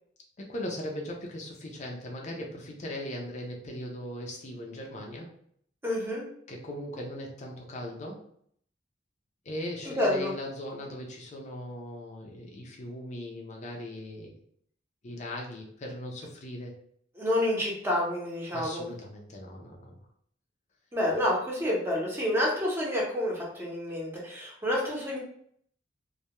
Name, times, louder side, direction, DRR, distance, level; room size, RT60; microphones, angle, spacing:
voice 1, 0.4-5.3 6.5-8.2 9.4-14.3 15.0-16.7 18.5-20.0, left 1 dB, 40° left, -1 dB, 0.5 m, -39 dB
voice 2, 5.8-6.2 9.9-10.3 17.2-18.8 20.9-25.2, left 1 dB, 15° right, -4 dB, 0.7 m, -28 dB
2.2 x 2.2 x 2.9 m, 0.63 s
head